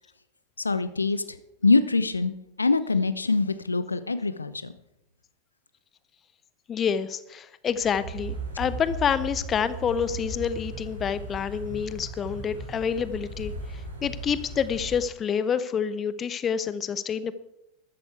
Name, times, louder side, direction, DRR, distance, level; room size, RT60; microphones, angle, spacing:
voice 1, 0.6-1.2 1.6-2.3 2.6-4.7, left 3 dB, 80° left, 14 dB, 0.8 m, -24 dB
voice 2, 6.7-17.3, left 7 dB, 25° left, 15 dB, 0.7 m, -28 dB
sound 1, 7.7-15.1, right 2 dB, 80° right, 6.2 m, -37 dB
13.5 x 12.5 x 4.7 m, 0.85 s
figure-of-eight pair, 90°, 0 cm